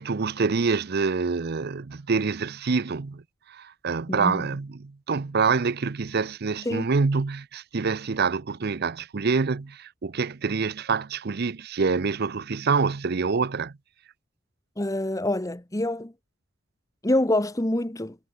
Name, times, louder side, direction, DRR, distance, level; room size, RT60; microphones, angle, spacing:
voice 1, 0.0-3.2 3.5-13.7, right 4 dB, 50° right, 0.6 m, -26 dB
voice 2, 4.1-4.5 6.6-6.9 14.8-16.1 17.0-18.2, left 1 dB, 15° left, 1.1 m, -26 dB
head